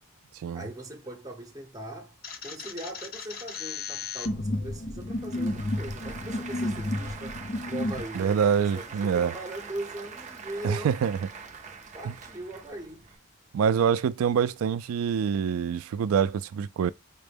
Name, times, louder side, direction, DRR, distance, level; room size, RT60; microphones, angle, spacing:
voice 1, 0.5-7.4 7.7-11.0 11.9-13.1, right 1 dB, 15° right, 0.9 m, -40 dB
sound 1, 2.2-8.0, left 2 dB, 45° left, 0.7 m, -32 dB
Applause / Crowd, 4.4-13.2, right 5 dB, 35° right, 0.6 m, -44 dB
voice 2, 8.2-9.3 10.6-11.2 13.5-16.9, right 7 dB, 80° right, 0.3 m, -25 dB
5.1 x 2.1 x 3.3 m
head